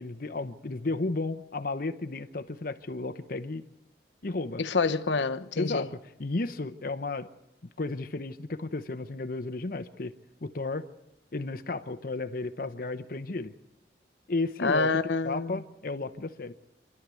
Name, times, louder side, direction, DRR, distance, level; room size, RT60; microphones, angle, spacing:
voice 1, 0.0-3.6 4.2-4.6 5.6-7.3 7.8-10.1 10.4-10.9 11.3-13.5 14.3-14.9 15.2-16.5, left 3 dB, 55° left, 0.8 m, -33 dB
voice 2, 4.6-5.9 14.6-15.6, left 4 dB, 90° left, 0.9 m, -27 dB
27.5 x 12.0 x 8.3 m
head